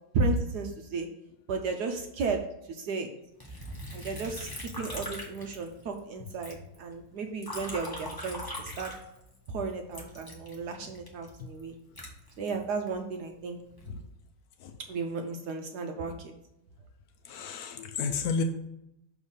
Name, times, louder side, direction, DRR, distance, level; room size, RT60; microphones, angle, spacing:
voice 1, 0.1-1.1 1.5-2.4 2.7-3.1 3.9-8.9 9.5-11.7 12.4-13.6 14.9-16.3, right 3 dB, 70° right, 4 dB, 1.0 m, -33 dB
Liquid, 3.4-6.0 6.3-9.5 9.9-12.9 13.5-14.0, equal, 15° left, 0.9 m, -41 dB
voice 2, 17.3-18.4, left 5 dB, 90° left, 5 dB, 0.8 m, -31 dB
6.5 x 3.6 x 5.4 m, 0.85 s
omnidirectional pair, 2.2 m